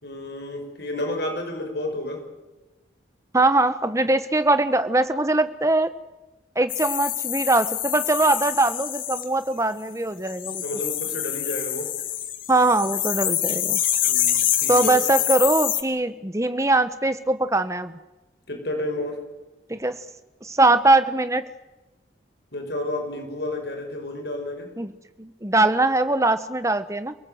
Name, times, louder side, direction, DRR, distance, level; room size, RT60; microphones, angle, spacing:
voice 1, 0.0-2.3 10.6-11.9 14.0-14.9 18.5-19.2 22.5-24.7, left 1 dB, 65° left, 4 dB, 5.5 m, -31 dB
voice 2, 3.3-5.9 6.5-10.6 12.5-13.8 14.7-17.9 19.7-20.0 20.4-21.5 24.8-24.9 25.2-27.1, right 2 dB, 15° right, 11 dB, 1.1 m, -21 dB
sound 1, 6.7-9.3 10.3-15.8, left 11 dB, 50° left, 1.5 m, -26 dB
28.0 x 18.5 x 7.9 m, 1.1 s
head